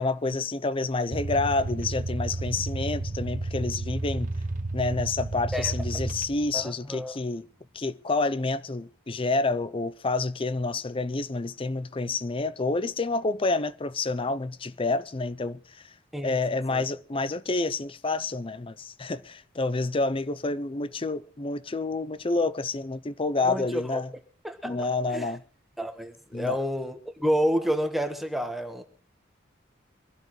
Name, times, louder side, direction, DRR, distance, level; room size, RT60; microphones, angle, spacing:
voice 1, 0.0-4.3 4.7-7.5 7.7-15.9 16.2-24.1 24.6-25.4 26.3-26.6, left 3 dB, 30° left, 0.6 m, -28 dB
sound 1, 1.1-6.7, right 2 dB, 45° right, 0.7 m, -32 dB
voice 2, 6.5-7.2 16.1-16.3 16.7-16.8 23.5-24.0 24.4-24.7 25.1-25.3 25.8-28.8, equal, ahead, 1.3 m, -29 dB
24.5 x 12.0 x 3.2 m
head